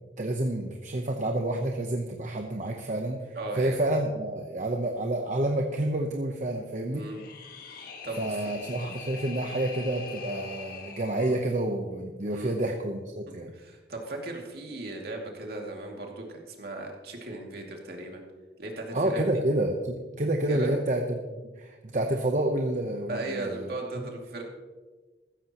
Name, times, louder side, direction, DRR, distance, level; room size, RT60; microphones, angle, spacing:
voice 1, 0.2-7.0 8.1-13.5 18.9-21.2 21.6-23.7, right 1 dB, 45° right, 3 dB, 0.9 m, -29 dB
voice 2, 3.4-3.8 6.9-7.2 8.0-8.5 12.3-12.7 13.5-18.2 18.6-19.2 20.5-20.7 23.1-24.4, right 2 dB, 60° right, 0 dB, 2.4 m, -37 dB
sound 1, 7.0-11.4, left 5 dB, 55° left, 1.6 m, -43 dB
15.0 x 13.5 x 3.0 m, 1.3 s
head